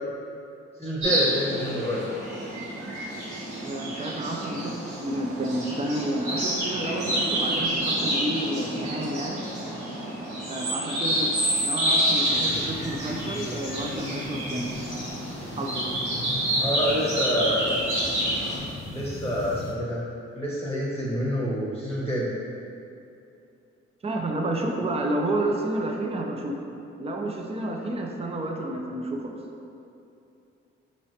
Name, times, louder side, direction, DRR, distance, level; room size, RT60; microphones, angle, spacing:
voice 1, 0.8-2.0 16.6-17.8 18.9-20.0 20.3-22.3, equal, 10° left, -6 dB, 1.0 m, -27 dB
sound 1, 1.0-18.6, right 1 dB, 75° right, 1.3 m, -28 dB
voice 2, 3.6-9.4 10.5-11.3 11.6-15.2 15.6-15.9 24.0-29.4, right 1 dB, 20° right, 1 dB, 0.5 m, -30 dB
sound 2, 12.2-19.7, left 2 dB, 60° left, 0.7 m, -38 dB
4.8 x 3.0 x 2.8 m, 2.7 s
supercardioid pair, 40°, 30 cm